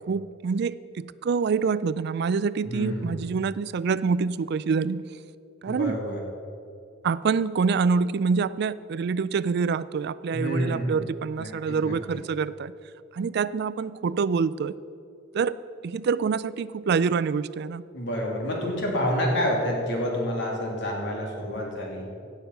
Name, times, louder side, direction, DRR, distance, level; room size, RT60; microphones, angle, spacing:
voice 1, 0.1-5.0 5.6-6.0 7.0-12.7 13.1-14.7 15.3-15.6 15.8-17.8, right 5 dB, 55° right, 17 dB, 0.3 m, -26 dB
voice 2, 2.6-3.2 5.7-6.2 10.3-11.1 11.4-11.9 17.9-22.1, equal, 60° left, -1 dB, 2.8 m, -28 dB
16.5 x 7.0 x 5.8 m, 2.4 s
head